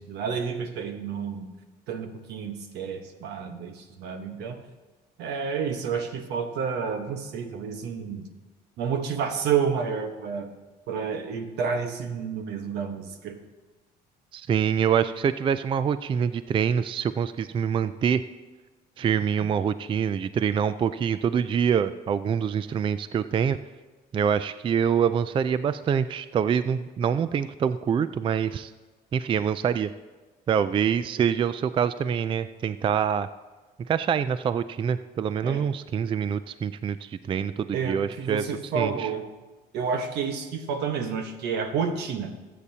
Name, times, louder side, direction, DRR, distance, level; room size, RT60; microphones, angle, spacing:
voice 1, 0.0-1.5 1.9-4.6 5.2-8.3 8.8-10.5 10.9-13.4 35.4-35.7 37.7-39.2 39.7-42.3, right 6 dB, 80° right, 6 dB, 1.2 m, -30 dB
voice 2, 14.3-18.2 19.0-23.6 24.1-28.7 29.1-29.9 30.5-33.3 33.9-38.4 38.7-39.1, right 7 dB, 30° right, 13 dB, 0.3 m, -25 dB
20.0 x 8.4 x 2.8 m, 1.2 s
cardioid pair, 110°, 17 cm